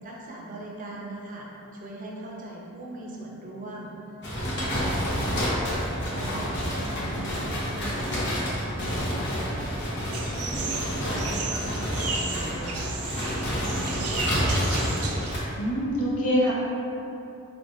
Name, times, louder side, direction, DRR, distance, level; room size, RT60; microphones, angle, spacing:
voice 1, 0.0-3.9 4.3-9.9 10.3-12.9 13.2-14.9, right 1 dB, 35° right, -3 dB, 0.5 m, -40 dB
sound 1, 4.2-15.4, equal, 50° left, 0.9 m, -29 dB
sound 2, 10.1-15.4, right 4 dB, 85° right, 0.5 m, -34 dB
voice 2, 15.5-16.5, equal, 85° left, -5 dB, 0.9 m, -24 dB
4.6 x 3.4 x 2.6 m, 2.9 s
head